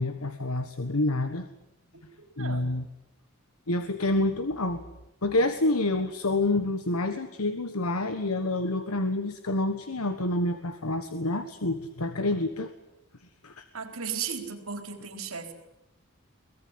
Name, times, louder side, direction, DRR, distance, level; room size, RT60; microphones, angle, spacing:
voice 1, 0.0-1.5 2.4-2.8 3.7-4.8 5.2-12.7 13.4-13.7, left 2 dB, 90° left, 9 dB, 1.5 m, -28 dB
voice 2, 2.4-2.7 13.7-15.5, right 6 dB, 75° right, 6 dB, 4.1 m, -35 dB
23.0 x 20.0 x 9.8 m, 0.90 s
head